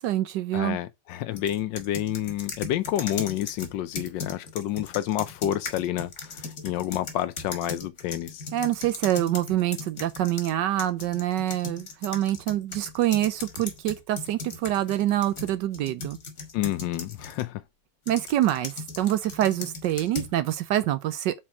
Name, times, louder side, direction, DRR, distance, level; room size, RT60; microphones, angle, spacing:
voice 1, 0.0-0.8 8.5-16.2 18.1-21.3, right 13 dB, 75° right, 1.1 m, -26 dB
voice 2, 0.5-8.4 16.5-17.6, left 12 dB, 75° left, 1.2 m, -29 dB
sound 1, 1.4-10.5 10.8-17.5 18.1-20.3, left 4 dB, 40° left, 1.4 m, -38 dB
4.5 x 4.2 x 5.8 m
omnidirectional pair, 2.1 m